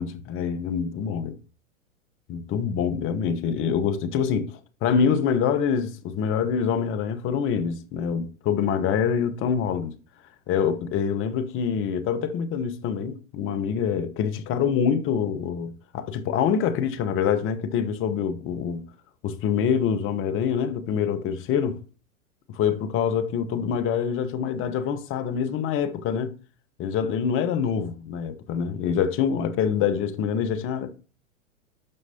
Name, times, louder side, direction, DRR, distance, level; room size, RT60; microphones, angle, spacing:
voice 1, 0.0-1.3 2.3-9.9 10.5-18.8 19.2-21.8 22.5-26.3 26.8-30.9, left 7 dB, 30° left, 1.0 m, -25 dB
12.0 x 4.6 x 2.8 m
hypercardioid pair, 110°, 41 cm